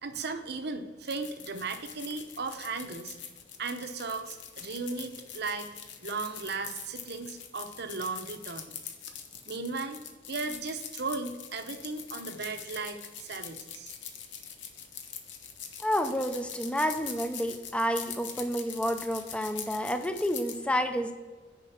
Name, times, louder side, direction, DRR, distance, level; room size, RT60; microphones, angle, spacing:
voice 1, 0.0-3.2 3.6-5.7 6.0-8.7 9.5-13.9, right 4 dB, 60° right, 7 dB, 0.8 m, -36 dB
sound 1, 1.1-20.6, left 8 dB, 70° left, 0.9 m, -43 dB
voice 2, 15.8-21.1, equal, 5° left, 8 dB, 0.5 m, -30 dB
6.6 x 5.2 x 5.9 m, 1.3 s
head